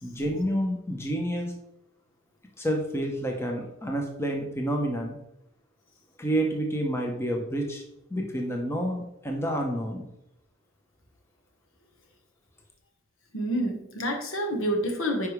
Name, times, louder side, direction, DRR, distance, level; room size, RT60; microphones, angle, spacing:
voice 1, 0.0-1.5 2.6-5.2 6.2-7.8 8.1-10.0, right 1 dB, 10° left, 1 dB, 0.9 m, -29 dB
voice 2, 13.3-15.3, equal, 70° left, 3 dB, 1.4 m, -28 dB
9.8 x 4.8 x 3.3 m, 0.81 s
head